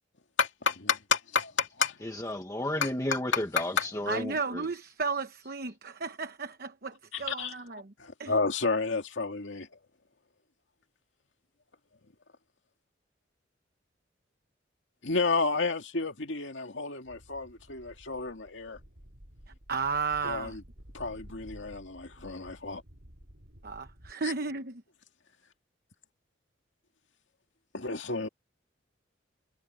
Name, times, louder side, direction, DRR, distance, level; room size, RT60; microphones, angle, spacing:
voice 1, 0.4-2.0 2.8-2.9 7.1-7.5 8.0-9.7 15.0-18.8 20.2-20.6 20.9-22.8 27.7-28.3, left 4 dB, 80° left, 2.2 m, -31 dB
voice 2, 2.0-4.6, left 1 dB, 15° left, 1.1 m, -33 dB
voice 3, 4.1-7.9 8.2-8.3 19.7-20.6 23.6-24.8, right 4 dB, 55° right, 1.0 m, -34 dB
sound 1, 17.0-24.1, equal, 70° right, 4.7 m, -52 dB
head